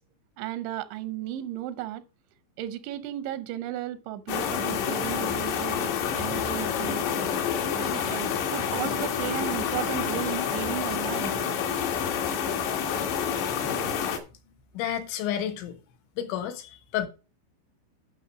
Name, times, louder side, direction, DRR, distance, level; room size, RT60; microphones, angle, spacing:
voice 1, 0.4-2.0 2.6-7.1 7.7-11.4, right 12 dB, 85° right, 3.1 m, -35 dB
sound 1, 4.3-14.2, left 7 dB, 75° left, 3.5 m, -28 dB
voice 2, 14.8-15.8 16.2-17.1, left 10 dB, 90° left, 3.7 m, -30 dB
11.5 x 5.6 x 5.0 m
omnidirectional pair, 5.2 m